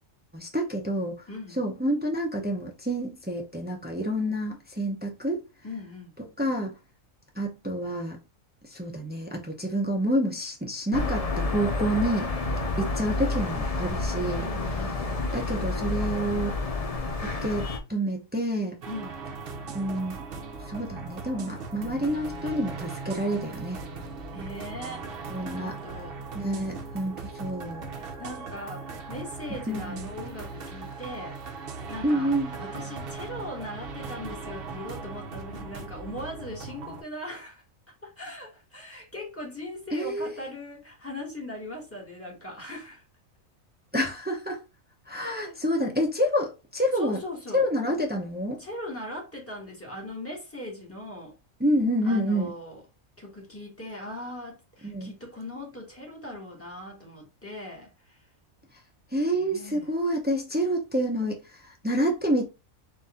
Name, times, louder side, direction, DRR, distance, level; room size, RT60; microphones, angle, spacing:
voice 1, 0.3-1.2 1.6-5.4 6.4-6.7 7.4-8.2 8.7-12.3 12.8-14.5 15.3-16.6 17.2-18.8 19.7-20.2 20.7-23.8 25.3-25.8 26.3-27.9 29.7-30.1 32.0-32.6 39.9-40.4 43.9-44.6 45.1-47.2 47.5-48.6 51.6-52.5 54.8-55.1 59.1-62.5, equal, 15° right, 0.4 m, -28 dB
voice 2, 1.3-1.6 5.6-6.1 14.4-15.3 18.8-19.2 24.3-25.0 25.5-26.2 27.9-31.4 31.9-37.6 38.0-43.0 45.4-45.6 46.9-47.6 48.6-51.4 52.0-52.8 53.2-58.2 59.3-59.9, left 1 dB, 10° left, 1.5 m, -39 dB
sound 1, 10.9-17.8, left 3 dB, 35° left, 0.6 m, -29 dB
sound 2, 18.8-37.0, right 4 dB, 55° right, 0.7 m, -39 dB
4.1 x 2.6 x 3.6 m
omnidirectional pair, 1.4 m